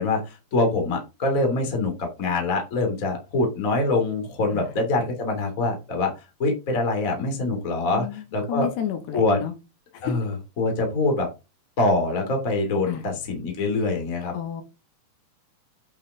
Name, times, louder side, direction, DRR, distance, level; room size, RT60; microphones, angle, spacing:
voice 1, 0.0-6.1 6.4-8.1 8.3-8.7 9.1-9.4 10.0-10.3 10.6-11.3 11.8-14.3, left 2 dB, 25° left, 3 dB, 2.3 m, -24 dB
voice 2, 7.9-9.5 9.9-10.2 12.9-13.0 14.3-14.6, left 10 dB, 75° left, 7 dB, 3.6 m, -31 dB
8.7 x 5.8 x 3.7 m, 0.26 s
omnidirectional pair, 5.0 m